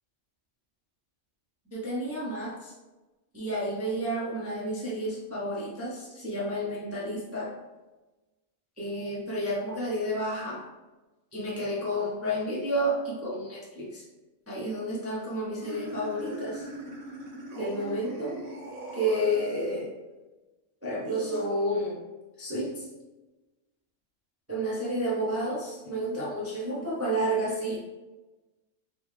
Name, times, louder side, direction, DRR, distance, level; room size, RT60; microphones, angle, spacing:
voice 1, 1.7-2.7 3.3-7.5 8.8-10.6 11.3-14.0 14.5-16.7 17.5-18.4 18.9-19.9 20.8-22.0 22.4-22.9 24.5-27.8, equal, 25° right, -6 dB, 0.3 m, -31 dB
sound 1, 15.6-19.8 21.0-21.4, right 1 dB, 85° right, 1.3 m, -41 dB
3.5 x 3.0 x 3.1 m, 1.1 s
omnidirectional pair, 1.4 m